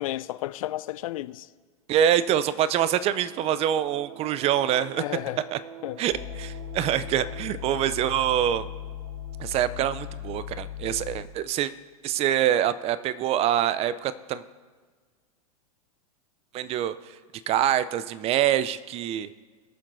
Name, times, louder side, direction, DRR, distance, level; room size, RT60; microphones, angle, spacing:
voice 1, 0.0-1.5 5.0-5.4 5.8-6.0, left 15 dB, 65° left, 0.4 m, -32 dB
voice 2, 1.9-5.0 5.5-5.6 6.0-8.7 9.4-11.7 12.0-14.4 16.5-16.9 17.5-19.3, right 10 dB, 30° right, 0.5 m, -25 dB
sound 1, 2.8-11.4, right 8 dB, 65° right, 1.0 m, -47 dB
sound 2, 6.1-11.2, left 11 dB, 20° left, 2.4 m, -38 dB
21.0 x 7.2 x 2.6 m
hypercardioid pair, 95°, 19 cm